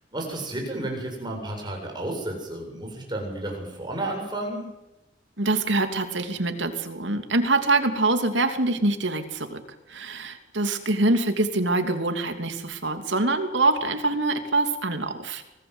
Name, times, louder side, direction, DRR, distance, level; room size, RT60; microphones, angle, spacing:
voice 1, 0.1-4.6, right 1 dB, 25° right, 1 dB, 7.8 m, -32 dB
voice 2, 5.4-9.6 9.9-15.6, right 2 dB, 75° right, 7 dB, 2.9 m, -24 dB
25.0 x 18.5 x 8.1 m, 0.96 s
head